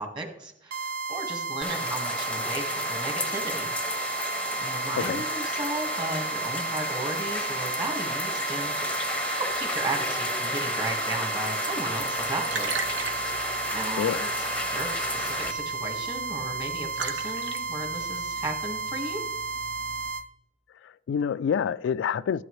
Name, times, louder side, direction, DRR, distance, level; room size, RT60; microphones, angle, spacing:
voice 1, 0.0-3.7 4.2-12.7 13.4-14.3 14.7-19.2, right 2 dB, 25° right, 1.7 m, -35 dB
sound 1, 0.7-20.2, right 4 dB, 50° right, 0.6 m, -33 dB
sound 2, 1.6-15.5, left 2 dB, 5° left, 0.7 m, -32 dB
voice 2, 4.9-5.3 14.0-14.3 20.8-22.4, left 7 dB, 85° left, 0.3 m, -27 dB
Liquid, 12.0-20.1, right 4 dB, 80° right, 1.1 m, -40 dB
13.5 x 10.5 x 3.2 m
head